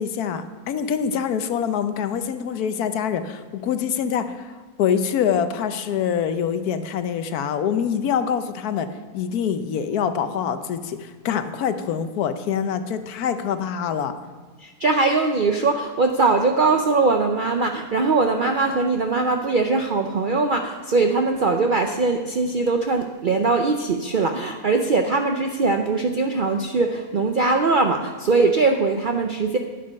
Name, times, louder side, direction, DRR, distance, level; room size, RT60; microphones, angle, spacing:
voice 1, 0.0-8.9 9.1-14.1, left 8 dB, 80° left, 10 dB, 1.2 m, -25 dB
voice 2, 14.6-29.6, right 3 dB, 60° right, 4 dB, 0.5 m, -21 dB
11.0 x 8.5 x 5.3 m, 1.5 s
omnidirectional pair, 1.6 m